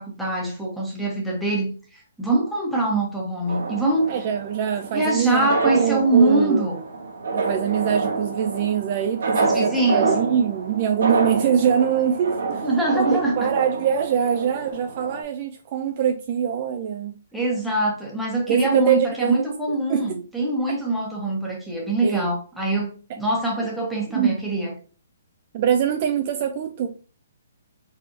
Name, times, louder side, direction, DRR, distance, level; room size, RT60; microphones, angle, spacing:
voice 1, 0.0-4.1 4.9-6.8 9.3-10.1 12.6-13.5 17.3-24.7, right 2 dB, ahead, 1.1 m, -23 dB
sound 1, 3.5-15.2, right 4 dB, 70° right, 1.1 m, -28 dB
voice 2, 4.1-6.7 7.3-12.7 12.9-13.1 13.4-17.2 18.5-19.5 19.9-20.2 20.7-20.8 22.0-22.3 23.6-23.7 24.1-24.4 25.5-26.9, right 8 dB, 35° right, 0.4 m, -23 dB
4.1 x 3.5 x 2.7 m
hypercardioid pair, 160°, 0 cm